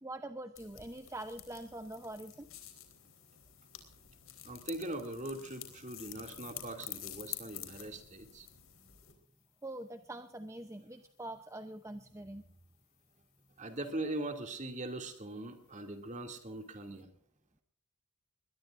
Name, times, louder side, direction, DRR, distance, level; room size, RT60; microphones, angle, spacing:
voice 1, 0.0-2.5 9.6-12.4, right 1 dB, 15° right, 8 dB, 0.7 m, -44 dB
sound 1, 0.6-9.1, left 11 dB, 60° left, 3.9 m, -49 dB
voice 2, 4.4-8.5 13.6-17.1, right 2 dB, 35° right, 4 dB, 2.6 m, -41 dB
22.0 x 20.5 x 2.6 m, 0.63 s
head